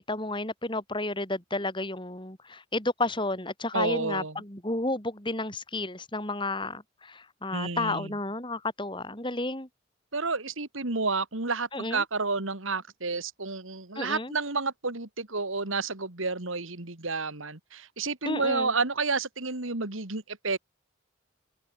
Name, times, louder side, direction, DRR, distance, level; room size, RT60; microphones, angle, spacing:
voice 1, 0.0-9.7 11.7-12.0 14.0-14.3 18.2-18.7, left 2 dB, 25° left, 4.3 m, -32 dB
voice 2, 3.7-4.4 7.5-8.1 10.1-20.6, right 4 dB, 75° right, 2.5 m, -30 dB
head